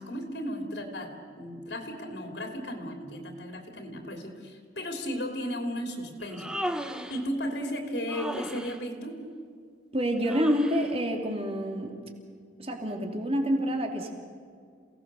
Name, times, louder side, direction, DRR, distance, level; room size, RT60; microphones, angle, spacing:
voice 1, 0.0-6.5 7.1-9.2, equal, 70° left, 3 dB, 3.2 m, -35 dB
Human voice, 6.2-7.2 8.1-8.8 10.2-10.9, equal, 5° right, 1.1 m, -35 dB
voice 2, 9.9-11.9 12.6-14.1, equal, 35° right, 3 dB, 2.8 m, -27 dB
28.5 x 18.5 x 6.9 m, 2.2 s
head